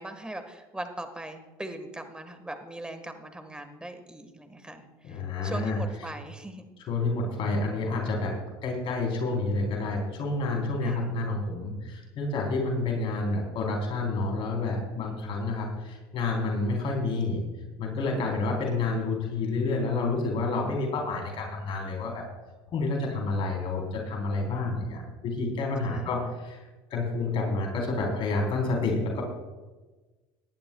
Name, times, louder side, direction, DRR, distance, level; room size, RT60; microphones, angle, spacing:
voice 1, 0.0-6.7 10.8-11.1 18.1-18.7 24.4-25.1 25.9-26.1, right 1 dB, 10° right, 7 dB, 1.6 m, -41 dB
voice 2, 5.0-5.8 6.9-8.3 8.6-17.4 17.8-22.2 22.7-26.6 26.9-29.2, left 3 dB, 50° left, 0 dB, 3.8 m, -29 dB
18.5 x 11.5 x 2.3 m, 1.2 s
supercardioid pair, 115°, 11 cm